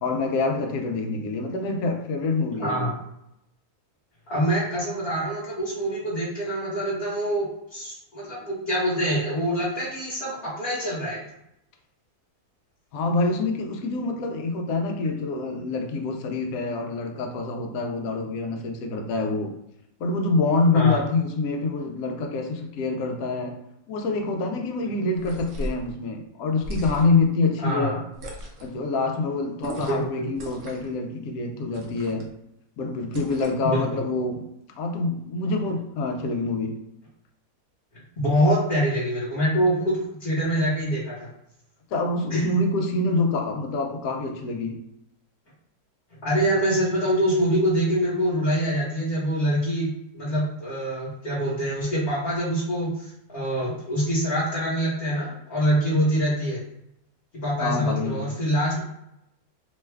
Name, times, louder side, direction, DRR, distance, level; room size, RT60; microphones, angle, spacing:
voice 1, 0.0-2.9 12.9-19.5 20.0-23.6 23.9-28.0 28.6-32.3 32.8-34.5 34.8-36.8 41.9-44.8 57.6-58.3, left 3 dB, 70° left, 4 dB, 1.0 m, -26 dB
voice 2, 2.6-2.9 4.3-11.2 20.7-21.1 27.6-28.0 29.9-30.3 33.6-34.0 38.2-41.3 42.3-42.6 46.2-56.6 57.3-58.8, equal, 45° left, -9 dB, 1.2 m, -25 dB
sound 1, 25.1-25.8 26.6-27.3 28.1-28.7 29.6-30.1 30.3-30.9 31.7-32.3 33.1-33.7, right 1 dB, 65° right, 0.9 m, -36 dB
3.0 x 2.2 x 3.3 m, 0.82 s
omnidirectional pair, 1.6 m